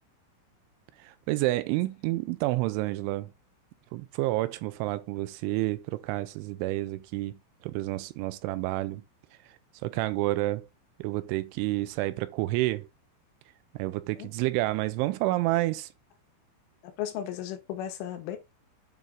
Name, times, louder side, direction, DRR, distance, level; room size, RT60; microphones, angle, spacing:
voice 1, 1.0-3.3 3.9-7.4 7.6-9.0 9.8-10.7 11.0-12.9 13.7-15.9, right 18 dB, 85° right, 2.9 m, -29 dB
voice 2, 16.8-18.4, left 11 dB, 90° left, 3.7 m, -35 dB
9.4 x 3.7 x 3.5 m
omnidirectional pair, 5.6 m